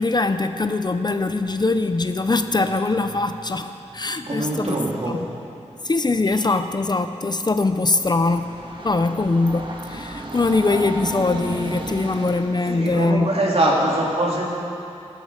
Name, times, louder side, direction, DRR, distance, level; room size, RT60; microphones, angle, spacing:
voice 1, 0.0-4.8 5.1-5.3 5.8-8.6 8.8-13.3, left 3 dB, 35° left, 9 dB, 0.6 m, -22 dB
voice 2, 4.2-5.2 12.7-14.4, right 1 dB, 60° right, -4 dB, 3.0 m, -22 dB
Train, 7.8-12.7, right 2 dB, 40° right, 1.4 m, -33 dB
16.5 x 13.0 x 5.0 m, 2.8 s
wide cardioid pair, 85°, 12 cm